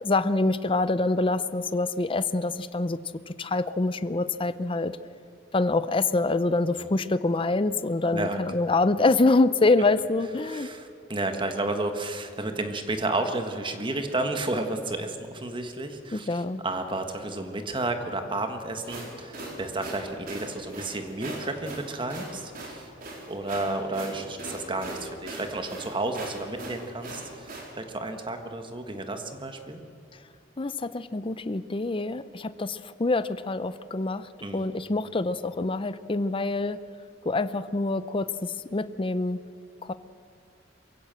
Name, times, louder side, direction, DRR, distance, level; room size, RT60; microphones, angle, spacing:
voice 1, 0.0-3.0 3.3-4.9 5.5-10.7 16.1-16.6 30.6-36.8 37.2-39.4 39.8-39.9, left 2 dB, 30° left, 14 dB, 0.6 m, -26 dB
voice 2, 10.4-22.9 23.3-29.8 34.4-34.7, right 2 dB, 25° right, 6 dB, 1.5 m, -32 dB
sound 1, 18.7-27.7, right 2 dB, 50° right, 4.2 m, -39 dB
23.0 x 16.0 x 7.6 m, 2.6 s
head